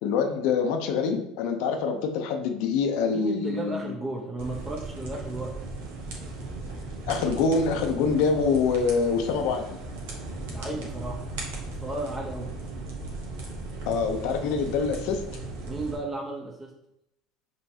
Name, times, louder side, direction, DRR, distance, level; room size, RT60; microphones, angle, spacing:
voice 1, 0.0-3.8 7.1-9.8 13.9-15.2, left 5 dB, 70° left, 5 dB, 0.6 m, -25 dB
voice 2, 3.1-5.6 10.5-11.3 11.7-12.5 15.6-16.7, right 2 dB, 20° right, -2 dB, 0.9 m, -34 dB
sound 1, 4.4-16.0, right 2 dB, 80° right, 1.1 m, -37 dB
5.5 x 3.0 x 2.8 m, 0.83 s
hypercardioid pair, 80°, 0 cm